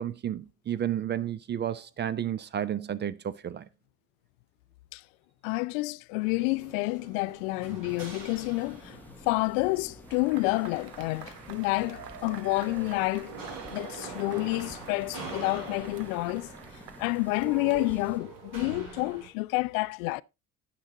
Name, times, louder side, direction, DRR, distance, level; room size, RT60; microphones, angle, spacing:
voice 1, 0.0-3.7, right 10 dB, 25° right, 0.4 m, -32 dB
voice 2, 5.4-9.0 9.3-13.3 13.7-16.5 17.0-20.2, left 23 dB, 60° left, 0.5 m, -29 dB
sound 1, 6.2-19.3, right 3 dB, 45° right, 6.4 m, -45 dB
sound 2, 7.9-18.2, left 1 dB, 5° left, 0.9 m, -51 dB
Cheering / Applause / Crowd, 10.0-18.7, right 8 dB, 80° right, 1.2 m, -47 dB
9.8 x 7.5 x 3.8 m
figure-of-eight pair, 65°, 48 cm